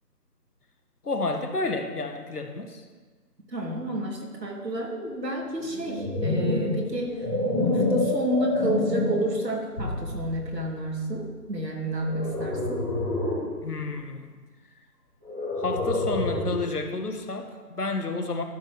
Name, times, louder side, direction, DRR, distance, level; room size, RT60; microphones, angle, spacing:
voice 1, 1.0-2.8 13.6-14.3 15.5-18.4, left 3 dB, 70° left, 5 dB, 1.6 m, -30 dB
voice 2, 3.5-7.2 7.6-12.8, right 1 dB, 80° right, -1 dB, 3.1 m, -30 dB
sound 1, 5.7-9.3 10.0-10.2 12.0-13.5 15.2-16.7, left 2 dB, 5° right, 2.4 m, -27 dB
sound 2, 9.8-12.2, left 1 dB, 10° left, 2.7 m, -38 dB
12.5 x 5.7 x 6.3 m, 1.5 s
figure-of-eight pair, 180°, 49 cm